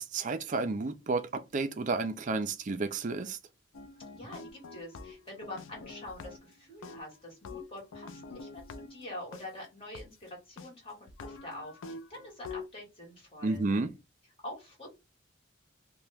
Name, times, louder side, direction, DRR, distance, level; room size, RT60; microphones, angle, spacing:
voice 1, 0.0-3.4 13.4-13.9, right 3 dB, 40° right, 0.4 m, -31 dB
sound 1, 3.7-6.5 6.8-9.4 9.9-10.0 10.6-10.7 11.1-12.7, left 4 dB, 80° left, 0.4 m, -46 dB
voice 2, 4.1-13.6 14.4-14.9, left 1 dB, 30° left, 1.7 m, -45 dB
2.9 x 2.2 x 3.3 m
head